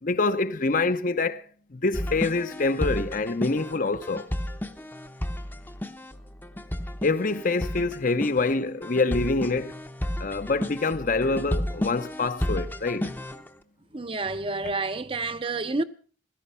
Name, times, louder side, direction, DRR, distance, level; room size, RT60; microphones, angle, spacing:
voice 1, 0.0-4.3 7.0-9.8 10.2-13.1, left 3 dB, 45° left, 0.7 m, -26 dB
sound 1, 1.9-13.5, equal, 10° left, 0.7 m, -32 dB
voice 2, 13.9-15.8, right 3 dB, 30° right, 0.6 m, -29 dB
16.0 x 13.5 x 5.5 m
head